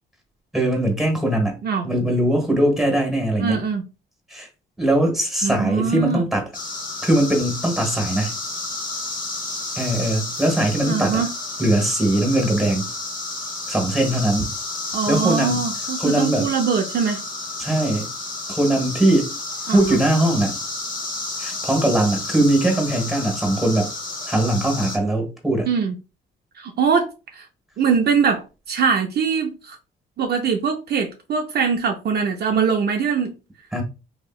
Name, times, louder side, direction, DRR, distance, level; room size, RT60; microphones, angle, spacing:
voice 1, 0.5-1.6 1.8-3.6 4.3-4.5 4.8-6.5 7.0-8.4 9.8-11.2 11.6-12.9 13.7-14.5 15.1-15.7 16.0-16.5 17.6-18.1 18.5-19.3 19.7-20.6 21.4-23.9 24.3-25.7 33.7-33.8, right 1 dB, ahead, 1.3 m, -20 dB
voice 2, 3.4-3.8 5.4-6.2 10.9-11.3 14.9-17.2 19.7-20.0 25.7-26.0 26.6-27.4 27.8-29.8 30.2-33.4, right 6 dB, 55° right, 0.5 m, -22 dB
sound 1, 6.5-25.0, left 3 dB, 45° left, 1.0 m, -31 dB
3.1 x 2.8 x 2.3 m
cardioid pair, 90°, 20 cm